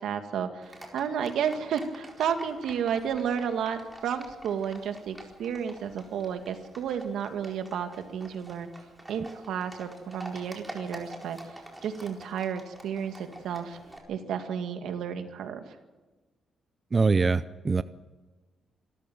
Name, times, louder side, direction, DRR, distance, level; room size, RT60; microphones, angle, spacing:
voice 1, 0.0-8.7 9.1-11.4 11.8-13.8 14.1-15.6, right 7 dB, 85° right, 6 dB, 2.1 m, -32 dB
Livestock farm animals working animals, 0.6-14.0, right 1 dB, 10° right, 4.4 m, -47 dB
voice 2, 16.9-17.8, right 4 dB, 25° right, 13 dB, 0.6 m, -23 dB
25.5 x 13.5 x 8.0 m, 1.3 s
cardioid pair, 135°, 0 cm